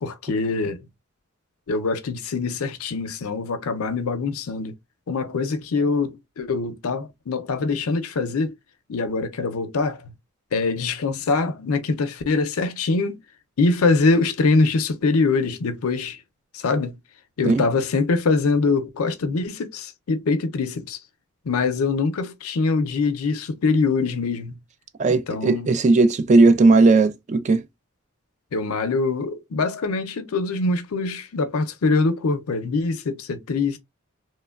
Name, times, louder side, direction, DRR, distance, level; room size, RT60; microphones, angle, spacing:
voice 1, 0.0-0.9 1.7-4.7 5.1-8.5 8.9-10.1 10.5-13.2 13.6-16.2 16.5-17.0 17.4-21.0 21.5-24.6 25.1-25.7 28.5-33.8, left 3 dB, 85° left, 0.5 m, -23 dB
voice 2, 25.0-27.6, right 3 dB, 35° right, 0.3 m, -16 dB
3.0 x 2.2 x 2.2 m
head